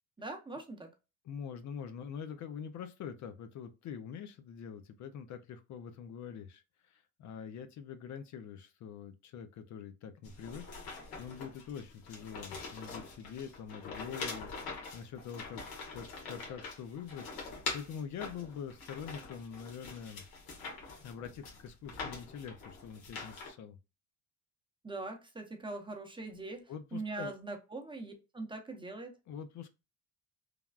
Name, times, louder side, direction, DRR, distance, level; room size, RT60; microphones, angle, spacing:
voice 1, 0.2-0.9 24.8-29.2, right 2 dB, 15° right, 0.7 m, -42 dB
voice 2, 1.2-20.2 21.0-23.8 26.7-27.3 29.3-29.7, left 7 dB, 55° left, 0.5 m, -45 dB
sound 1, 10.2-23.5, left 4 dB, 85° left, 1.3 m, -44 dB
3.3 x 2.3 x 2.3 m
cardioid pair, 95°, 36 cm